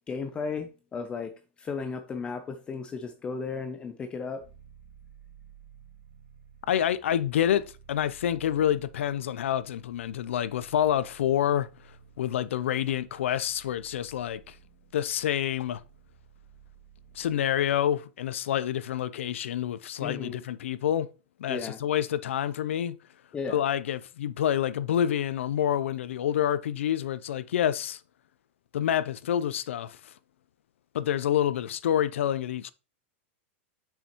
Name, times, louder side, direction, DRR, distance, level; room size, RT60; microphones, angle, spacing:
voice 1, 0.1-4.4 20.0-20.4 21.5-21.8 23.3-23.6, left 5 dB, 15° left, 0.5 m, -35 dB
sound 1, 4.4-17.8, right 8 dB, 50° left, 2.1 m, -55 dB
voice 2, 6.7-11.7 12.2-14.6 14.9-15.8 17.1-21.1 21.4-23.0 23.5-28.0 28.7-30.1 30.9-32.7, left 10 dB, 90° left, 0.5 m, -27 dB
6.8 x 5.7 x 2.9 m
supercardioid pair, 155°, 7 cm